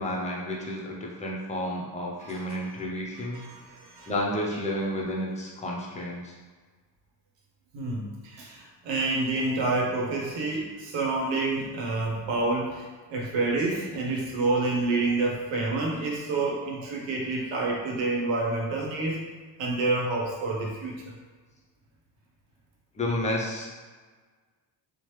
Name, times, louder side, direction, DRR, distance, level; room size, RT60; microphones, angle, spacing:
voice 1, 0.0-3.4 4.1-6.3 9.5-9.6 23.0-23.7, left 1 dB, 15° left, -3 dB, 0.5 m, -31 dB
voice 2, 2.2-2.9 3.1-4.1 7.7-19.2 19.6-21.1, right 2 dB, 90° right, -1 dB, 0.8 m, -28 dB
3.1 x 2.1 x 3.0 m, 1.4 s
cardioid pair, 120°, 43 cm